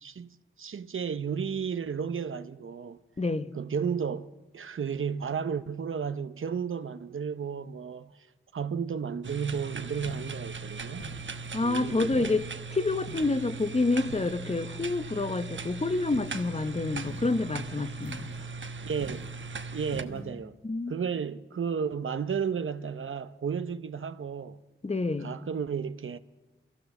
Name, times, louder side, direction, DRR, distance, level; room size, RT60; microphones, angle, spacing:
voice 1, 0.0-3.0 3.5-8.3 8.5-11.1 11.6-12.3 18.8-19.3 19.7-20.6 20.9-24.6 25.2-26.2, right 6 dB, 85° right, 0.7 m, -33 dB
voice 2, 3.2-3.5 11.5-12.4 12.7-18.3 20.1-20.3 20.6-21.0 24.8-25.4, left 3 dB, 30° left, 0.9 m, -28 dB
sound 1, 9.2-20.0, right 4 dB, 70° right, 1.2 m, -39 dB
sound 2, 10.0-10.4 11.0-11.6 12.1-12.5 13.1-13.5 14.1-14.6 16.1-16.5 17.0-17.5 18.0-18.5 19.0-19.4 19.9-20.3, left 1 dB, 80° left, 6.8 m, -46 dB
24.0 x 16.0 x 7.1 m
wide cardioid pair, 100°, 20 cm